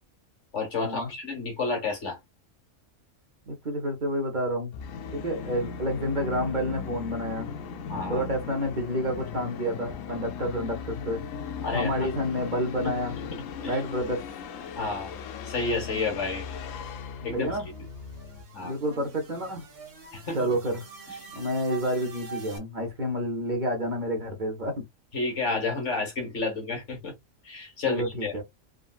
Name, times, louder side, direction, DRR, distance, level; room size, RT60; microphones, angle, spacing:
voice 1, 0.5-2.2 7.9-8.3 11.6-12.1 13.6-13.8 14.8-15.2 15.4-16.4 17.2-17.6 18.5-18.7 20.1-20.4 25.1-27.1 27.4-28.3, left 3 dB, 65° left, 1.7 m, -30 dB
voice 2, 3.5-4.7 5.1-7.5 7.9-11.2 11.7-13.2 13.7-14.2 17.3-17.7 18.6-19.6 20.3-20.8 21.3-24.8 27.8-28.4, equal, 40° right, 0.9 m, -29 dB
Musical instrument, 4.7-18.4, left 6 dB, 80° left, 1.0 m, -38 dB
sound 1, 16.4-22.6, right 3 dB, 75° right, 1.4 m, -46 dB
3.7 x 2.2 x 2.3 m
omnidirectional pair, 1.3 m